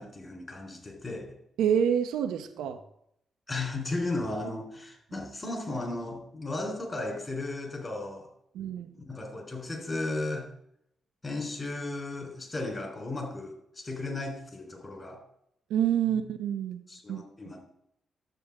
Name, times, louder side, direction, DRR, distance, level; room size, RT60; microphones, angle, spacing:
voice 1, 0.0-1.4 3.5-8.3 8.9-10.5 11.2-15.2 16.1-16.2 16.9-17.6, left 2 dB, 35° left, 2 dB, 4.0 m, -35 dB
voice 2, 1.6-2.8 8.5-8.9 15.7-16.8 17.1-17.5, right 9 dB, 85° right, 7 dB, 0.7 m, -28 dB
12.5 x 7.7 x 3.7 m, 0.74 s
supercardioid pair, 50°, 0 cm